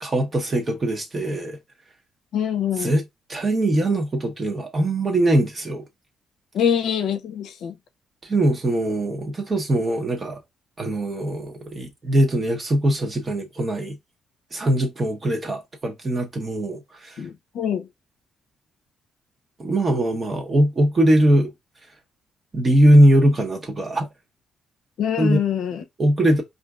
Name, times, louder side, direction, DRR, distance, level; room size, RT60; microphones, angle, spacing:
voice 1, 0.0-1.6 2.8-3.0 3.3-5.8 8.2-10.4 10.8-14.0 14.5-17.2 19.6-21.5 22.5-24.1 25.2-25.4 26.0-26.4, right 1 dB, 35° right, 0.9 m, -21 dB
voice 2, 2.3-2.9 6.5-7.7 17.2-17.9 25.0-25.8, left 8 dB, 75° left, 0.6 m, -24 dB
4.3 x 2.6 x 2.4 m
cardioid pair, 90°, 0 cm